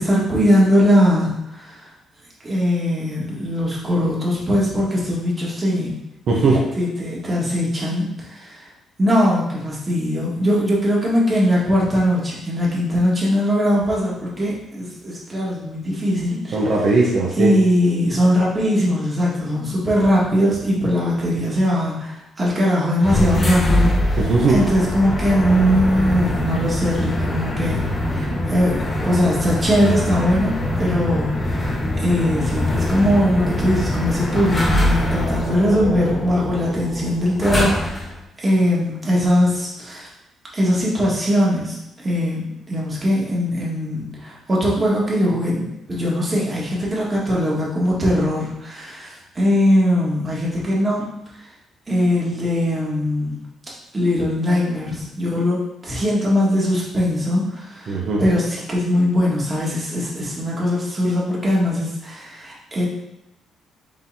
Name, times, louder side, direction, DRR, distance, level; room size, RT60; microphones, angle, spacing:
voice 1, 0.0-1.8 2.4-6.0 6.8-8.6 9.0-16.6 17.4-24.2 24.5-31.7 32.0-37.9 38.4-40.1 40.5-41.8 42.0-51.0 51.9-53.4 53.9-62.9, equal, 25° right, -5 dB, 1.6 m, -20 dB
voice 2, 6.3-6.6 16.5-17.5 24.2-24.6 57.9-58.2, right 3 dB, 65° right, -3 dB, 0.8 m, -18 dB
sound 1, 23.0-38.2, left 1 dB, 25° left, 1.3 m, -23 dB
5.1 x 3.7 x 2.7 m, 0.87 s
cardioid pair, 90°, 0 cm